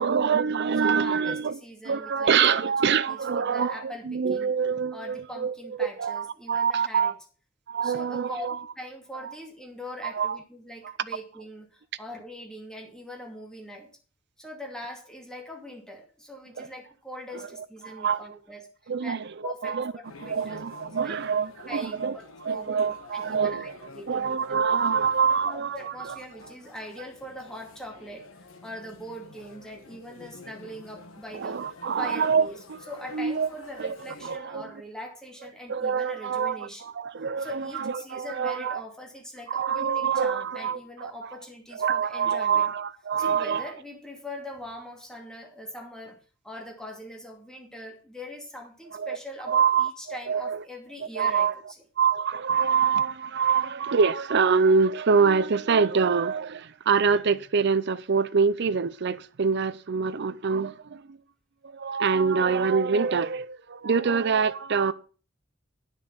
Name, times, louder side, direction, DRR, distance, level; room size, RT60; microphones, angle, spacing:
voice 1, 0.0-1.6 1.9-7.1 7.7-8.6 9.2-9.4 10.0-10.4 10.8-10.9 16.6-16.7 17.3-17.5 17.8-18.3 18.9-19.9 20.2-22.2 22.4-23.7 24.1-26.2 31.3-32.8 33.1-33.5 33.8-34.0 34.2-34.7 35.7-38.8 39.5-41.4 41.7-43.6 48.9-49.2 49.5-50.6 51.1-51.5 52.0-61.2 61.6-64.9, right 6 dB, 60° right, 0.6 m, -25 dB
voice 2, 0.8-4.5 4.9-7.1 7.8-8.5 8.8-13.9 14.4-19.2 19.4-20.6 21.0-21.2 21.7-22.9 23.1-23.7 23.9-24.3 25.4-31.7 32.0-32.6 32.9-36.8 37.4-42.7 43.2-46.2 46.4-51.5, left 1 dB, 5° left, 2.4 m, -42 dB
sound 1, 20.0-34.4, left 2 dB, 80° left, 1.3 m, -49 dB
10.0 x 6.6 x 6.6 m
head